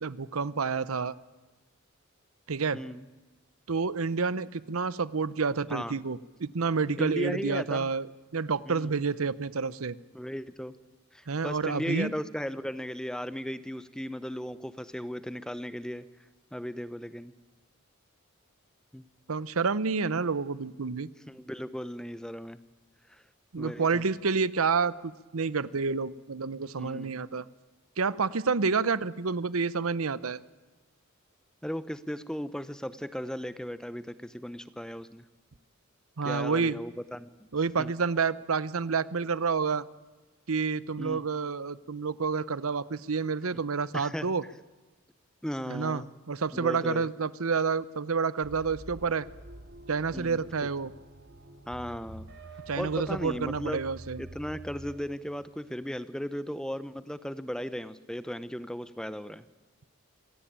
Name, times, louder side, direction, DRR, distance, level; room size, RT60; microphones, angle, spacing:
voice 1, 0.0-1.1 2.5-2.8 3.7-10.0 11.3-12.1 19.3-21.1 23.5-27.4 28.0-30.4 36.2-36.8 37.5-39.8 40.5-44.4 45.7-49.3 49.9-50.9 52.7-54.2, right 5 dB, 90° right, 18 dB, 0.8 m, -29 dB
voice 2, 2.7-3.0 5.7-5.9 7.0-7.9 8.7-8.9 10.1-10.7 11.1-16.1 16.5-17.3 18.9-19.0 21.3-22.6 23.1-23.2 23.6-24.0 26.8-27.1 31.6-35.2 36.2-37.3 37.8-37.9 41.0-41.3 43.9-44.3 45.4-46.1 46.5-47.1 50.1-50.4 51.7-52.3 52.8-53.8 54.2-59.4, equal, 5° left, 14 dB, 0.8 m, -36 dB
sound 1, 48.4-55.0, right 1 dB, 55° right, 3.1 m, -47 dB
25.5 x 17.0 x 8.8 m, 1.2 s
head